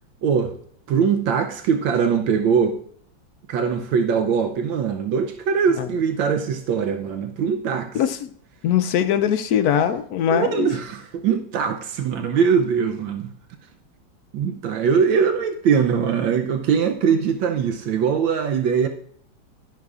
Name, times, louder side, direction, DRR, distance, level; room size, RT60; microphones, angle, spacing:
voice 1, 0.2-0.5 0.9-2.8 3.5-8.0 10.3-13.3 14.3-18.9, right 6 dB, 75° right, 1.4 m, -21 dB
voice 2, 7.9-8.3 8.6-10.7, left 9 dB, 80° left, 0.8 m, -21 dB
11.5 x 10.5 x 2.4 m
omnidirectional pair, 2.1 m